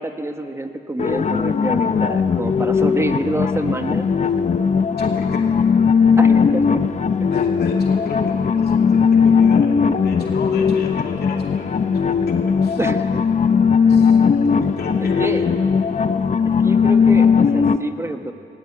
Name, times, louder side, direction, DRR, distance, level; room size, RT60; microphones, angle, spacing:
voice 1, 0.0-4.1 6.2-6.8 12.8-13.2 15.2-15.4 16.6-18.3, right 1 dB, 15° right, 7 dB, 1.4 m, -27 dB
sound 1, 1.0-17.8, left 6 dB, 45° left, 0.8 m, -18 dB
voice 2, 5.0-5.6 7.2-11.7 12.3-12.8 13.9-14.2 14.6-15.6, left 5 dB, 75° left, 0 dB, 2.5 m, -32 dB
19.5 x 19.0 x 8.7 m, 2.6 s
cardioid pair, 90°, 16 cm